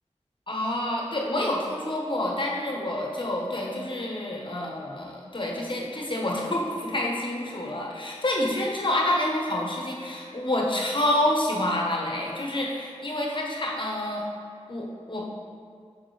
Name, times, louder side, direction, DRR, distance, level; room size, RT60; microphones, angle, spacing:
voice 1, 0.5-14.2 14.7-15.2, left 1 dB, 45° left, -2 dB, 1.0 m, -28 dB
6.6 x 5.9 x 3.2 m, 2.3 s
wide cardioid pair, 70°, 12 cm